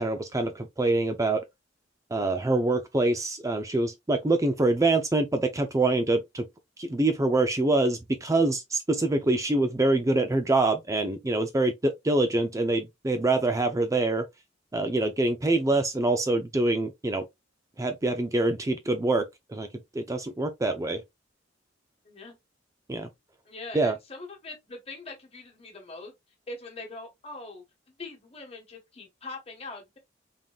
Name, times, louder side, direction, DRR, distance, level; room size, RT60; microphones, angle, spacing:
voice 1, 0.0-1.4 2.1-6.5 6.8-14.3 14.7-17.3 17.8-19.2 19.5-19.7 19.9-21.0 22.9-23.1 23.7-23.9, right 2 dB, 15° right, 0.4 m, -25 dB
voice 2, 22.0-22.4 23.4-26.1 26.5-30.0, left 3 dB, 35° left, 1.5 m, -42 dB
3.8 x 3.5 x 2.4 m
head